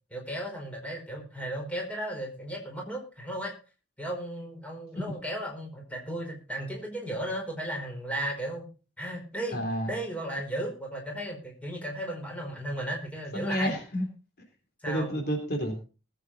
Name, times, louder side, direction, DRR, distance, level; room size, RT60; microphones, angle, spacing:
voice 1, 0.1-3.5 4.0-8.6 9.0-9.6 9.9-13.7 14.8-15.1, right 1 dB, 5° left, 0 dB, 4.9 m, -35 dB
voice 2, 9.5-9.9 13.3-14.1 14.9-15.8, equal, 55° left, 4 dB, 3.4 m, -30 dB
20.0 x 8.5 x 4.3 m, 0.34 s
head